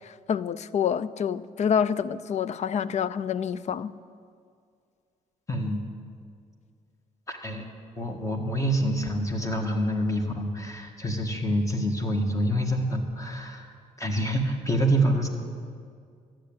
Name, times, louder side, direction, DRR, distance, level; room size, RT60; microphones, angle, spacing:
voice 1, 0.3-3.9, left 7 dB, 55° left, 0.4 m, -27 dB
voice 2, 5.5-5.8 7.3-7.6 8.0-13.7 14.0-15.3, right 1 dB, 20° left, 1.7 m, -26 dB
13.0 x 7.6 x 8.7 m
cardioid pair, 85°, 14 cm